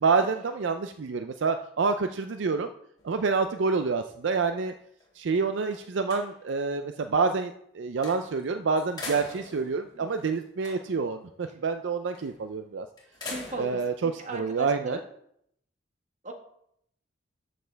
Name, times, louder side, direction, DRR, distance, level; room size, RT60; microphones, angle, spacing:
voice 1, 0.0-2.7 3.0-4.7 5.2-12.9 13.6-15.0, right 4 dB, 70° right, 8 dB, 0.4 m, -27 dB
sound 1, 3.0-4.5 5.0-5.1 5.5-6.7 8.0-8.4 8.8-11.1 12.1-12.5 13.0-13.9, left 2 dB, 20° left, 3.0 m, -43 dB
voice 2, 9.9-10.3 11.5-11.6 13.2-13.8 14.2-15.1 16.2-16.3, right 2 dB, 40° right, 3 dB, 1.4 m, -39 dB
13.0 x 6.5 x 3.4 m, 0.73 s
head